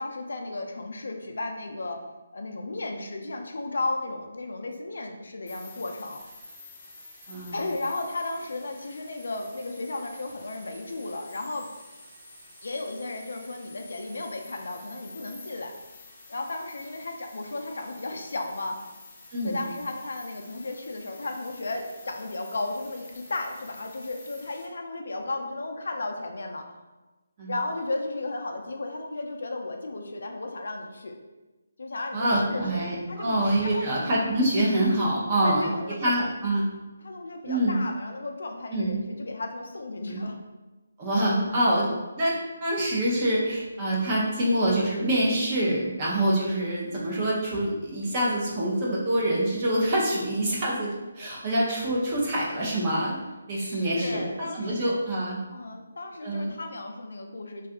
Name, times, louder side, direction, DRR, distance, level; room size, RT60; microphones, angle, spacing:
voice 1, 0.0-2.0 2.3-6.2 7.5-11.7 12.6-15.7 16.3-18.8 19.4-26.7 27.5-31.2 31.8-32.8 33.1-33.4 33.6-33.9 35.4-36.1 37.0-40.4 41.5-41.6 44.1-44.4 53.5-55.0 55.5-57.7, left 2 dB, 70° left, 3 dB, 0.4 m, -34 dB
sound 1, 5.5-24.7, left 2 dB, 15° left, 0.6 m, -49 dB
voice 2, 7.3-7.6 19.3-19.6 27.4-27.5 32.1-35.7 36.0-36.6 37.4-37.8 38.7-39.0 40.1-40.2 41.0-41.9 42.2-53.1 53.5-55.4 56.2-56.5, right 1 dB, 25° right, -5 dB, 0.6 m, -25 dB
2.7 x 2.4 x 3.5 m, 1.1 s
hypercardioid pair, 170°, 0 cm